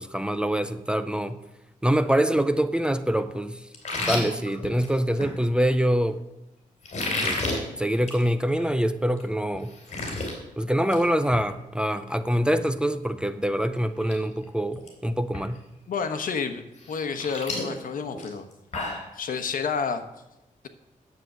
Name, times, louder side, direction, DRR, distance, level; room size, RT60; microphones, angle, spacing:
voice 1, 0.0-1.4 1.8-3.7 4.0-6.2 7.2-7.4 7.8-9.7 10.6-15.6, right 1 dB, 5° right, 11 dB, 0.5 m, -25 dB
sound 1, 3.7-5.3 6.8-7.6 8.0-8.2 8.6-8.7 9.2-9.3 9.5-10.3 10.7-11.0 11.3-11.5 13.3-13.4 13.9-14.1 14.4-14.9 15.3-15.4 16.8-19.1, left 2 dB, 55° left, 3.2 m, -31 dB
voice 2, 15.9-18.5 18.8-20.0, left 5 dB, 75° left, 8 dB, 1.1 m, -30 dB
9.8 x 7.5 x 7.8 m, 0.93 s
wide cardioid pair, 180°, 14 cm